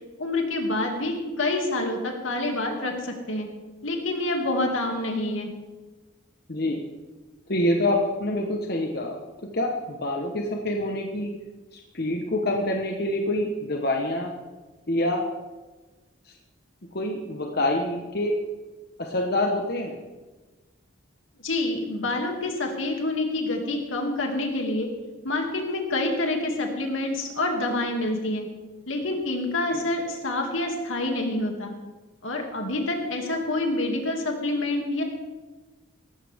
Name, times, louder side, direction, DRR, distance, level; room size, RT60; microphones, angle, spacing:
voice 1, 0.2-3.5 3.8-5.5 21.4-24.9 25.2-28.5 28.9-31.7 32.2-35.0, left 2 dB, 85° left, 2 dB, 2.5 m, -27 dB
voice 2, 6.5-6.8 7.5-9.2 9.5-11.3 11.7-14.3 14.9-15.3 16.2-16.3 16.9-18.3 19.0-20.0 29.7-29.9, left 1 dB, 50° left, 1 dB, 1.2 m, -26 dB
17.5 x 14.5 x 3.6 m, 1.2 s
head